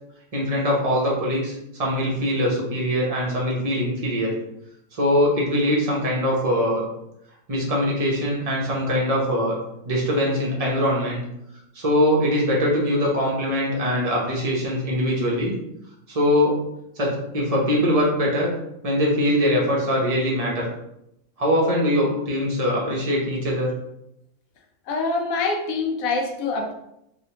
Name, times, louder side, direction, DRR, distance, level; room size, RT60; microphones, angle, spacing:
voice 1, 0.3-4.3 4.9-6.8 7.5-9.6 9.8-11.2 11.7-15.6 16.1-16.6 17.0-18.5 18.8-20.7 21.4-23.7, equal, 35° right, -3 dB, 0.7 m, -22 dB
voice 2, 24.9-26.7, left 3 dB, 75° left, 2 dB, 1.0 m, -25 dB
3.2 x 2.4 x 2.8 m, 0.82 s
omnidirectional pair, 1.5 m